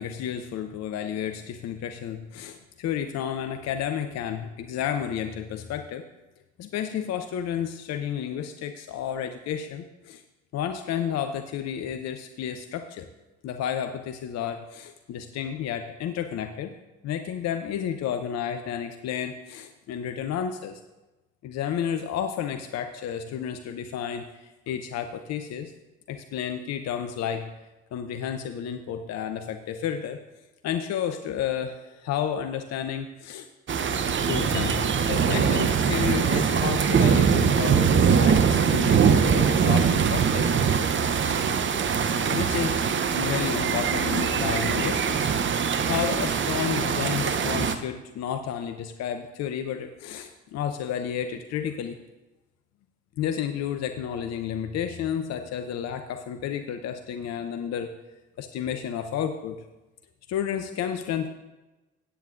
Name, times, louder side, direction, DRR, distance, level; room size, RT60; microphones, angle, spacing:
voice 1, 0.0-6.0 6.6-10.2 10.5-13.1 13.4-16.8 17.0-20.8 21.4-25.7 26.1-27.5 27.9-30.2 30.6-33.5 34.3-40.5 42.2-42.8 43.1-45.3 45.8-52.0 53.2-57.9 58.4-59.6 60.3-61.3, left 9 dB, 50° left, 8 dB, 0.7 m, -31 dB
sound 1, 33.7-47.8, right 6 dB, 35° right, 0.8 m, -22 dB
17.0 x 9.1 x 2.6 m, 1.1 s
figure-of-eight pair, 50°, 33 cm